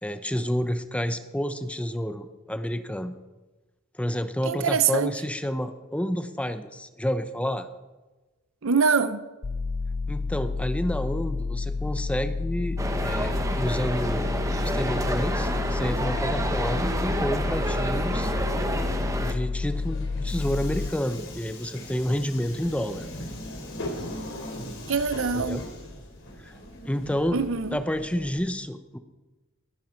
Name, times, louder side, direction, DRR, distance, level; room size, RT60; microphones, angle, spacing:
voice 1, 0.0-3.2 3.9-7.7 10.1-14.3 14.6-18.3 19.2-23.1 25.3-25.6 26.4-26.5 26.8-27.4 27.7-29.0, equal, 5° left, 0.7 m, -29 dB
voice 2, 4.4-5.1 8.6-9.2 24.9-25.6 27.3-27.8, right 5 dB, 65° right, 0.8 m, -24 dB
sound 1, 9.4-20.9, left 4 dB, 35° left, 0.4 m, -30 dB
sound 2, 12.8-19.3, right 1 dB, 15° right, 1.1 m, -29 dB
Subway metro underground, 19.6-28.4, left 1 dB, 60° left, 4.0 m, -39 dB
20.0 x 11.5 x 4.5 m
head